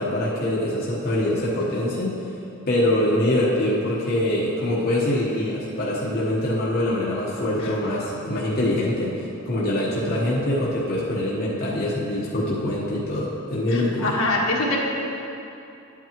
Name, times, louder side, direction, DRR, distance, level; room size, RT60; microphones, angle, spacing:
voice 1, 0.0-2.2 2.7-9.1 9.5-14.1, left 1 dB, 45° left, -7 dB, 1.0 m, -24 dB
voice 2, 13.7-14.8, left 2 dB, 65° left, -3 dB, 1.4 m, -24 dB
11.5 x 8.3 x 3.0 m, 2.8 s
head